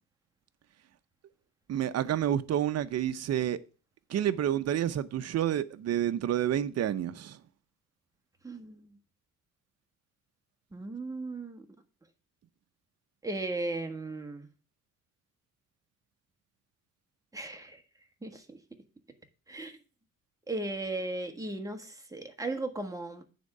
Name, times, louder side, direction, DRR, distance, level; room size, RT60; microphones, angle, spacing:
voice 1, 1.7-3.6 4.1-7.4, right 10 dB, 55° right, 0.7 m, -29 dB
voice 2, 8.4-8.9 10.7-11.6 13.2-14.5 17.3-17.8 18.2-18.6 19.5-19.8 20.5-23.2, right 2 dB, 10° right, 1.6 m, -36 dB
9.3 x 3.7 x 6.7 m
cardioid pair, 90°, 30 cm